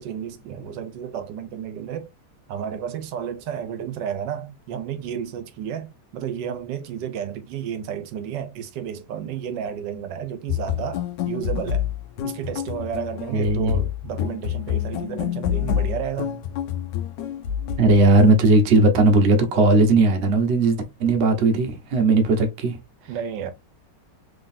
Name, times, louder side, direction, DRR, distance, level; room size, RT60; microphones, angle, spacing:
voice 1, 0.0-2.1 2.5-11.9 12.2-16.4 23.1-23.5, right 8 dB, 80° right, 1.2 m, -32 dB
sound 1, 10.5-18.4, left 10 dB, 80° left, 1.2 m, -28 dB
voice 2, 13.3-13.7 17.8-22.8, right 2 dB, 50° right, 0.9 m, -17 dB
3.7 x 3.4 x 2.6 m
omnidirectional pair, 1.9 m